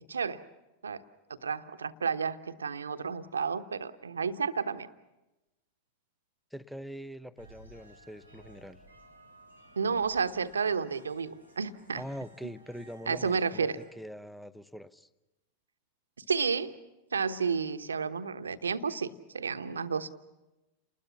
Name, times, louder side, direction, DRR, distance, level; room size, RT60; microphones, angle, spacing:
voice 1, 0.1-0.4 0.8-1.0 1.4-4.9 9.8-12.0 13.1-13.8 16.3-16.7 17.1-20.1, right 5 dB, 70° right, 11 dB, 1.0 m, -31 dB
voice 2, 6.5-8.8 11.9-13.7 14.0-15.1, equal, ahead, 15 dB, 0.8 m, -43 dB
sound 1, 7.4-13.9, right 1 dB, 90° left, 3.8 m, -56 dB
30.0 x 20.5 x 7.1 m, 1.0 s
figure-of-eight pair, 90°, 0 cm